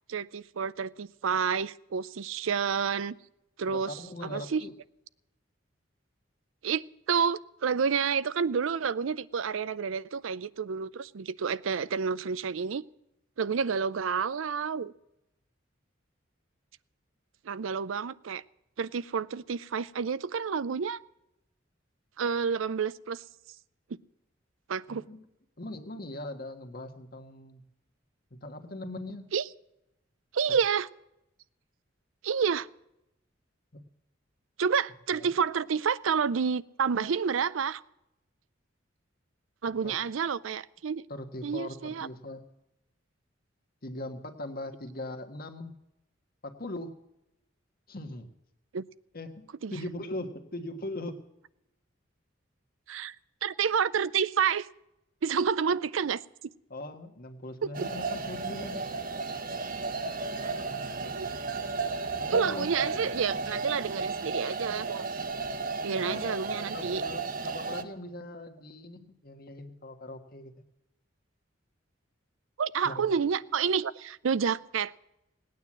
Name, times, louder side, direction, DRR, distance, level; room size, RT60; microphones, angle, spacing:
voice 1, 0.1-3.1 3.6-4.0 4.3-4.6 6.6-12.8 13.4-14.9 17.4-18.4 18.8-21.0 22.2-23.2 24.7-25.0 29.3-29.5 30.3-30.9 32.2-32.7 34.6-37.8 39.6-41.0 41.4-42.1 48.7-48.8 49.6-49.7 52.9-53.2 53.4-54.7 55.2-56.2 57.6-57.9 61.1-61.3 62.3-65.1 65.8-67.0 72.6-74.9, right 6 dB, 85° right, 18 dB, 0.5 m, -29 dB
voice 2, 3.7-4.7 24.9-25.3 25.6-27.6 28.3-29.3 33.7-33.8 35.1-35.3 39.8-39.9 41.1-42.4 43.8-45.7 46.4-47.0 47.9-48.3 49.1-51.3 56.7-58.9 62.2-63.0 65.9-66.4 66.7-70.5 72.8-73.2, left 1 dB, 50° left, 6 dB, 1.5 m, -40 dB
sound 1, 57.7-67.8, right 4 dB, 45° right, 1.0 m, -34 dB
18.0 x 9.3 x 7.4 m, 0.86 s
head